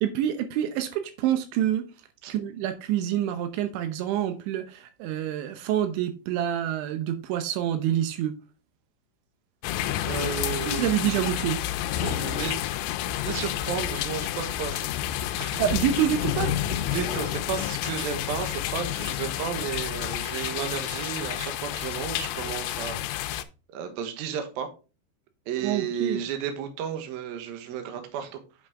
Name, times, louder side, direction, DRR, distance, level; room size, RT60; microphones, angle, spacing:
voice 1, 0.0-1.9 2.3-8.4 10.7-11.6 15.6-16.5 25.6-26.2, right 11 dB, 85° right, 3.2 m, -27 dB
sound 1, 9.6-23.4, left 12 dB, 85° left, 3.0 m, -30 dB
voice 2, 10.0-11.5 12.0-12.6 13.3-14.9 15.4-15.6 16.7-23.4 23.7-24.7 25.5-28.4, right 8 dB, 65° right, 2.7 m, -33 dB
8.1 x 6.2 x 3.6 m
omnidirectional pair, 5.3 m